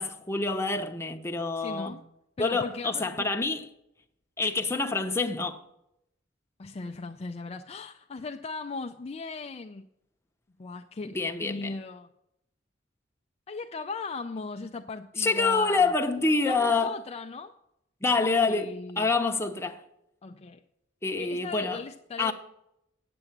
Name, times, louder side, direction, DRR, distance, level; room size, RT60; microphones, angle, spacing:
voice 1, 0.0-1.9 2.4-3.7 4.4-5.6 11.1-11.7 15.2-17.0 18.0-19.8 21.0-21.8 22.2-22.3, left 3 dB, 15° left, 0.8 m, -27 dB
voice 2, 1.6-2.0 2.4-3.3 6.6-9.9 10.6-12.1 13.5-15.9 16.4-17.6 18.2-19.1 20.2-20.6 21.2-22.3, left 3 dB, 35° left, 0.4 m, -38 dB
9.0 x 7.8 x 7.2 m
head